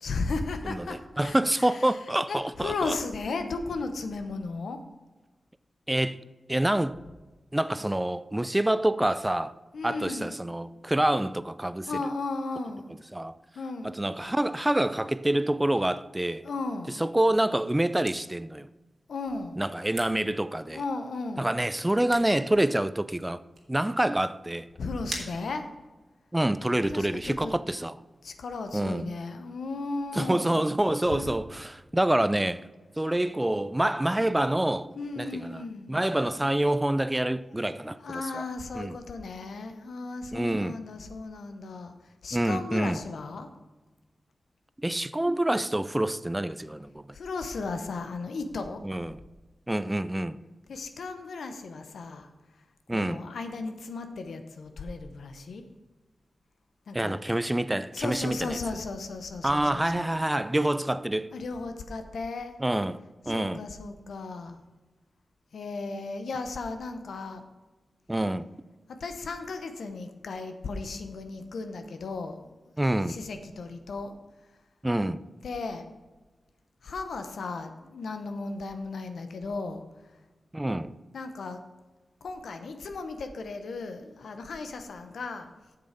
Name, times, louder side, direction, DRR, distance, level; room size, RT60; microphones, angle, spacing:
voice 1, 0.0-2.0 2.3-4.8 9.7-10.3 11.9-12.9 13.5-14.0 16.4-16.9 19.1-19.6 20.7-21.5 24.8-25.6 26.9-27.5 28.2-30.6 31.1-31.4 35.0-35.9 38.0-43.5 47.1-48.8 50.7-52.3 52.9-55.6 56.9-57.5 57.9-60.1 61.3-62.6 63.3-64.6 65.5-67.5 68.9-72.5 73.1-74.1 75.4-75.9 76.8-79.8 81.1-81.6 82.2-85.5, left 3 dB, 85° left, 0.8 m, -35 dB
voice 2, 1.2-2.9 5.9-6.2 6.5-7.0 7.5-9.5 9.8-11.9 13.1-13.3 13.8-16.4 17.0-18.7 19.6-20.8 21.4-23.4 23.7-24.7 26.3-28.0 28.7-29.1 30.1-32.7 33.0-34.9 35.2-35.6 35.9-38.4 38.7-39.0 40.3-40.8 42.3-43.0 44.8-47.0 48.8-49.2 49.7-50.4 52.9-53.2 56.9-58.6 59.4-61.3 62.6-63.0 63.3-63.6 68.1-68.5 72.8-73.2 74.8-75.2 80.5-80.9, right 1 dB, 15° right, 0.4 m, -27 dB
sound 1, 17.6-26.2, right 3 dB, 75° right, 1.8 m, -47 dB
7.9 x 6.8 x 5.1 m
cardioid pair, 45°, 0 cm